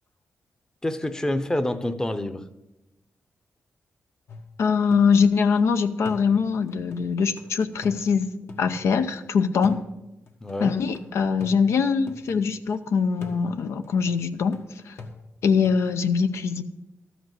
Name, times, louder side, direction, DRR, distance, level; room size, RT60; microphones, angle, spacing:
voice 1, 0.8-2.4 10.4-10.8, left 1 dB, 15° left, 10 dB, 0.7 m, -27 dB
sound 1, 4.3-5.6 6.0-9.2 9.6-12.8 13.2-15.8, left 3 dB, 65° left, 1.5 m, -45 dB
voice 2, 4.6-9.8 10.6-14.6 14.9-15.0 15.4-16.6, left 5 dB, 80° left, 9 dB, 0.7 m, -23 dB
13.0 x 5.1 x 7.8 m, 0.96 s
wide cardioid pair, 115°, 5 cm